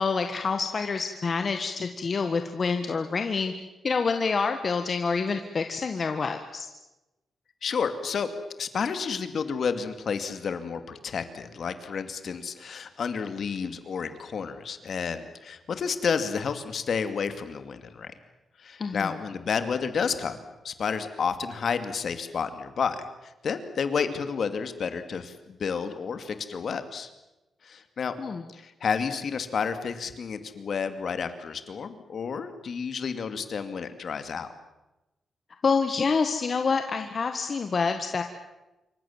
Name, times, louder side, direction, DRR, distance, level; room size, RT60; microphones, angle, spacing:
voice 1, 0.0-3.5 3.8-6.7 18.8-19.1 28.2-28.4 35.6-38.2, left 5 dB, 40° left, 7 dB, 1.6 m, -27 dB
voice 2, 7.6-8.3 8.6-18.1 18.6-20.4 20.6-27.1 27.6-28.1 28.5-34.5, left 6 dB, 60° left, 10 dB, 2.4 m, -31 dB
27.0 x 24.5 x 7.4 m, 0.99 s
wide cardioid pair, 130°, 0 cm